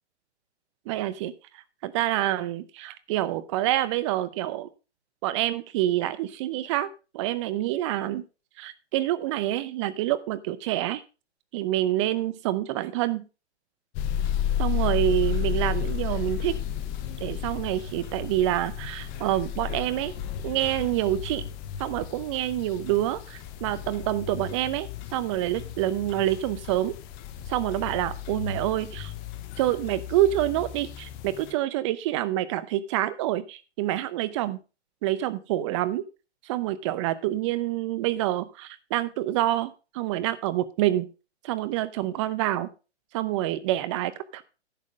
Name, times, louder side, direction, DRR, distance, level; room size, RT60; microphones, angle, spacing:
voice 1, 0.9-1.3 1.8-4.7 5.2-6.9 7.1-8.2 8.6-11.0 11.5-13.2 14.6-16.5 17.2-20.1 20.4-21.4 21.8-27.0 27.5-29.1 29.6-34.6 35.0-36.0 36.4-41.1 41.4-42.7 43.1-44.4, right 14 dB, 25° right, 15 dB, 0.7 m, -27 dB
sound 1, 13.9-31.5, left 10 dB, 25° left, 1.1 m, -33 dB
11.0 x 7.4 x 5.0 m, 0.32 s
hypercardioid pair, 135°, 34 cm